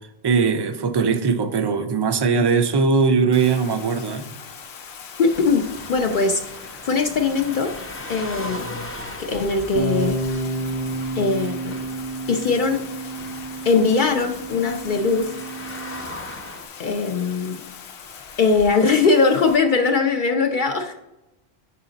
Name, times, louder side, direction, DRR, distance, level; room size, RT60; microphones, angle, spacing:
voice 1, 0.2-4.3, right 5 dB, 45° right, 8 dB, 0.3 m, -20 dB
Bathtub (filling or washing), 3.3-19.6, left 7 dB, 80° left, 0.9 m, -41 dB
voice 2, 5.2-5.6 5.9-7.7 8.1-8.7 9.2-10.2 11.1-11.8 12.3-12.8 13.6-15.4 15.8-16.0 16.8-17.6 18.4-20.9, left 4 dB, 55° left, 4 dB, 0.7 m, -20 dB
sound 1, 5.3-16.7, left 1 dB, 15° left, 0.5 m, -39 dB
sound 2, 9.8-16.0, right 2 dB, 90° right, 1.0 m, -30 dB
5.8 x 4.8 x 3.8 m, 0.95 s
omnidirectional pair, 1.1 m